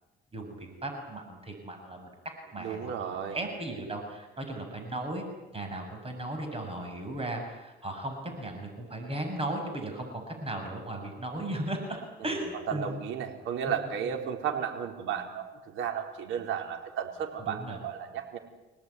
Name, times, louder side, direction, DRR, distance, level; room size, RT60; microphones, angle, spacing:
voice 1, 0.3-2.1 2.5-5.2 5.5-13.0 13.7-13.8 17.5-17.8, right 1 dB, 30° right, 4 dB, 6.9 m, -36 dB
voice 2, 2.6-3.4 6.8-6.9 12.7-18.4, right 8 dB, 90° right, 3 dB, 4.6 m, -34 dB
29.5 x 18.5 x 9.7 m, 1.0 s
cardioid pair, 90°, 20 cm